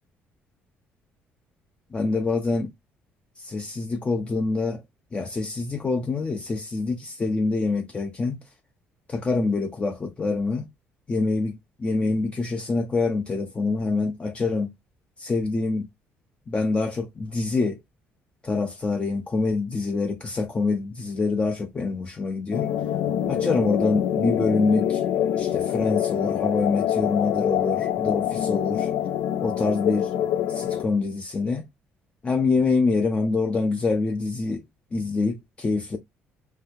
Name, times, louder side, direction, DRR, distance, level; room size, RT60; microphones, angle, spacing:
voice 1, 1.9-2.7 3.4-4.8 5.1-8.4 9.1-10.7 11.1-14.7 15.2-15.9 16.5-17.8 18.4-22.7 23.3-25.0 25.4-28.9 29.4-30.1 30.5-31.6 32.2-34.6 34.9-36.0, left 3 dB, 25° left, 0.5 m, -25 dB
sound 1, 22.5-30.8, left 10 dB, 80° left, 0.4 m, -25 dB
2.7 x 2.2 x 3.4 m
cardioid pair, 110°, 5 cm